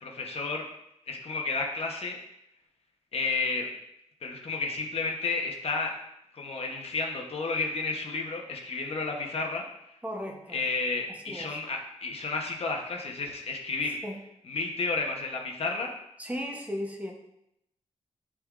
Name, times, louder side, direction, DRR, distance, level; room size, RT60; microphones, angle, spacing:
voice 1, 0.0-0.7 1.1-2.2 3.1-3.7 4.2-5.9 6.3-9.6 10.5-14.0 14.5-15.9, left 3 dB, 55° left, 1 dB, 0.9 m, -31 dB
voice 2, 10.0-10.6 11.1-11.6 14.0-14.2 16.2-17.1, equal, 10° right, 1 dB, 0.8 m, -36 dB
11.0 x 3.7 x 2.5 m, 0.80 s
wide cardioid pair, 145°, 13 cm